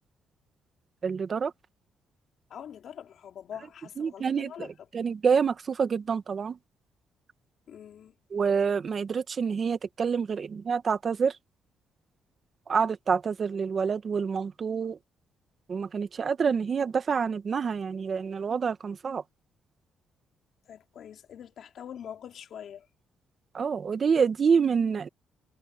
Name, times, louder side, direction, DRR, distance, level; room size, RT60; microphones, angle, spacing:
voice 1, 1.0-1.5 4.0-4.7 4.9-6.6 8.3-11.4 12.7-15.0 15.7-19.2 23.5-25.1, right 6 dB, 45° right, 1.6 m, -27 dB
voice 2, 2.5-4.7 7.7-8.1 20.6-22.9, left 9 dB, 65° left, 3.2 m, -44 dB
cardioid pair, 90°, 0 cm